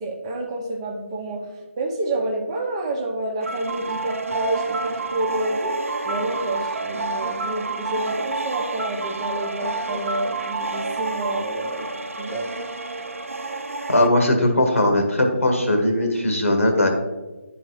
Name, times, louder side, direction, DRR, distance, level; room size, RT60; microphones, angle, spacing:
voice 1, 0.0-1.5 1.8-5.8 6.0-11.9 12.2-12.5, right 1 dB, 20° right, 0 dB, 0.8 m, -28 dB
sound 1, 3.4-14.1, right 3 dB, 75° right, 0.5 m, -29 dB
voice 2, 13.9-16.9, left 1 dB, 85° left, 3 dB, 1.7 m, -19 dB
10.5 x 3.9 x 3.1 m, 1.2 s
figure-of-eight pair, 155°, 7 cm